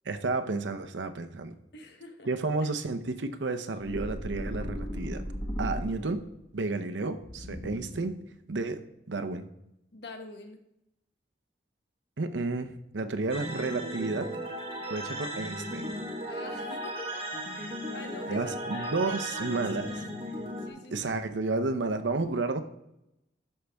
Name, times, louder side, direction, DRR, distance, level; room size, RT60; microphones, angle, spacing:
voice 1, 0.1-1.5 2.3-5.2 5.6-6.2 6.5-8.2 8.5-8.8 9.1-9.5 12.2-14.3 14.9-15.9 18.3-19.9 20.9-22.6, right 3 dB, 90° right, 8 dB, 0.7 m, -31 dB
voice 2, 1.7-2.3 9.9-10.6 16.3-20.2 20.6-21.1, left 2 dB, 70° left, 5 dB, 1.1 m, -45 dB
sound 1, 3.8-6.3 7.2-8.2, equal, 20° left, 1.5 m, -36 dB
sound 2, 13.3-20.7, right 1 dB, 30° right, 1.4 m, -36 dB
13.0 x 5.6 x 3.5 m, 0.85 s
head